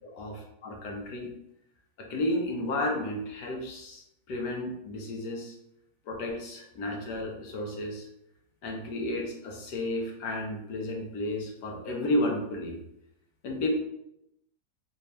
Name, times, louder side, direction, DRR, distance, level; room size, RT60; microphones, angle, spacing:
voice 1, 0.0-0.3 0.6-1.3 2.0-5.5 6.1-8.1 8.6-12.8 13.4-13.7, left 1 dB, 70° left, 0 dB, 1.3 m, -32 dB
4.1 x 2.4 x 3.2 m, 0.80 s
omnidirectional pair, 1.9 m